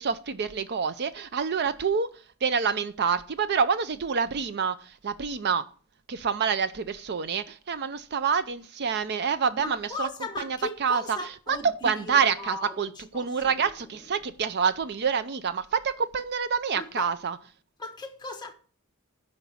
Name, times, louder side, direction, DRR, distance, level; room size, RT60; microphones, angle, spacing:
voice 1, 0.0-2.1 2.4-5.6 6.1-10.1 10.4-11.2 11.5-11.6 11.8-17.4, right 6 dB, 50° right, 0.5 m, -27 dB
voice 2, 9.5-13.3 13.6-13.7 16.7-17.1 17.8-18.5, left 2 dB, 20° left, 1.3 m, -37 dB
9.8 x 5.2 x 7.0 m
head